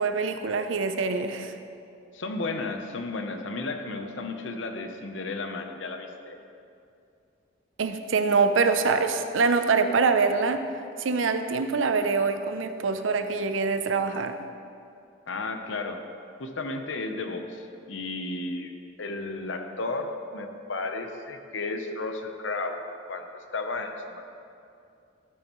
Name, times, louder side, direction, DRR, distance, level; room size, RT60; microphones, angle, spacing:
voice 1, 0.0-1.6 7.8-10.6 11.0-14.3, right 4 dB, 80° right, 8 dB, 0.6 m, -24 dB
voice 2, 2.1-6.4 15.3-16.0 16.4-18.7 19.0-22.8 23.1-23.3 23.5-24.2, left 3 dB, 70° left, 5 dB, 0.8 m, -33 dB
13.0 x 8.9 x 3.1 m, 2.5 s
head